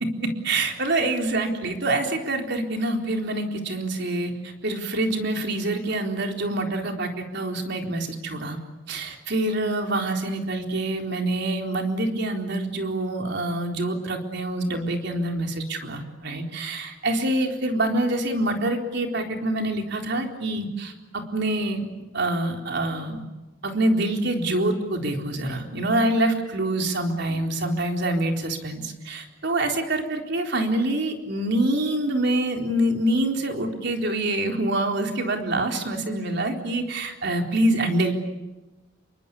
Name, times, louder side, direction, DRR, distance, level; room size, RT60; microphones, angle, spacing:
voice 1, 0.0-8.6 8.9-21.8 22.1-23.2 23.6-38.1, right 1 dB, 60° right, 3 dB, 4.0 m, -26 dB
29.0 x 24.0 x 8.5 m, 1.1 s
head